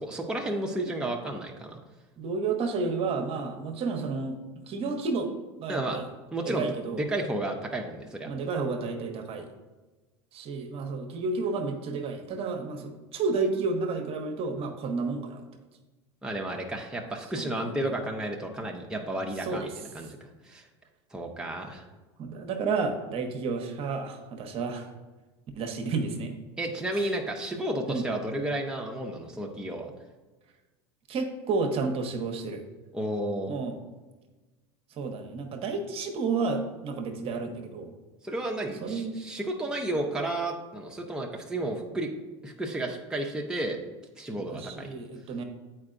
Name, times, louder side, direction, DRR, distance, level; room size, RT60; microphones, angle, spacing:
voice 1, 0.0-1.8 5.7-6.0 6.3-6.6 6.9-8.3 16.2-19.7 19.9-20.2 20.4-20.7 21.1-21.8 26.6-29.9 32.9-33.5 38.2-42.1 42.4-43.8 44.2-44.9, right 1 dB, 5° right, 0 dB, 0.7 m, -32 dB
voice 2, 2.2-5.3 5.6-6.1 6.5-7.0 8.2-9.5 10.3-15.4 17.3-17.8 19.4-19.7 22.2-24.9 25.5-26.3 26.9-27.1 27.9-28.1 31.1-32.6 33.5-33.8 35.0-37.9 38.8-39.1 44.4-45.4, right 4 dB, 45° right, 5 dB, 0.9 m, -31 dB
8.5 x 4.5 x 2.5 m, 1.2 s
hypercardioid pair, 85°, 14 cm